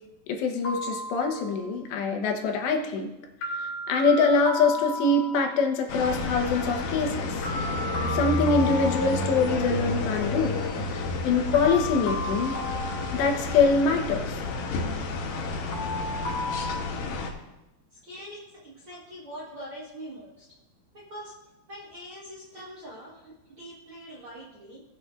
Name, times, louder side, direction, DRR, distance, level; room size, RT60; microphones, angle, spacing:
voice 1, 0.3-3.1 3.6-7.3 8.1-10.5 10.8-12.6 13.1-14.4, left 4 dB, 85° left, 3 dB, 3.3 m, -24 dB
sound 1, 0.6-1.8 3.4-5.7 7.4-9.7 11.5-13.9 15.7-16.8, left 2 dB, 55° left, 3.8 m, -34 dB
sound 2, 5.9-17.3, left 3 dB, 70° left, 2.1 m, -30 dB
voice 2, 18.0-20.5 20.9-21.3 21.7-24.8, equal, 60° right, -5 dB, 1.4 m, -43 dB
18.5 x 8.2 x 2.5 m, 0.96 s
omnidirectional pair, 4.8 m